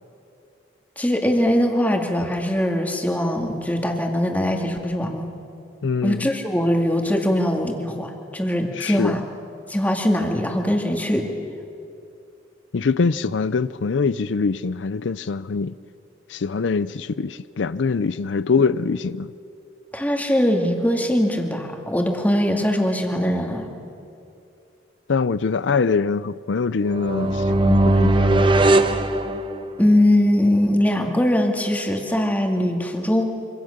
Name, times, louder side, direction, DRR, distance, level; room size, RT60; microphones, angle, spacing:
voice 1, 1.0-5.3 6.0-9.2 9.7-11.2 19.9-23.7 29.8-33.2, left 1 dB, 10° left, 2.3 m, -21 dB
voice 2, 5.8-6.3 8.8-9.1 12.7-15.8 16.3-19.3 25.1-28.5, left 4 dB, 85° left, 0.5 m, -23 dB
sound 1, 26.9-29.9, right 2 dB, 25° right, 1.0 m, -19 dB
26.0 x 25.5 x 6.6 m
head